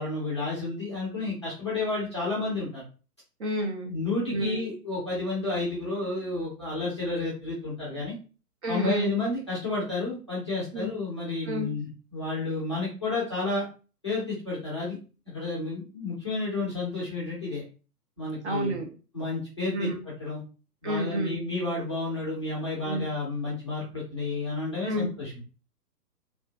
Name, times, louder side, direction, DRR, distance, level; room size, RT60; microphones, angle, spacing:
voice 1, 0.0-2.8 3.9-8.2 8.7-13.7 14.0-15.0 15.3-17.6 18.2-18.7 19.1-20.4 20.8-25.4, left 3 dB, 20° left, -7 dB, 0.4 m, -31 dB
voice 2, 3.4-3.9 4.3-4.6 8.6-9.1 10.7-10.9 11.4-11.7 18.4-18.9 19.7-20.0 20.8-21.4 22.9-23.0 24.8-25.1, equal, 45° right, 3 dB, 0.6 m, -30 dB
2.5 x 2.3 x 2.2 m, 0.35 s
figure-of-eight pair, 135°, 48 cm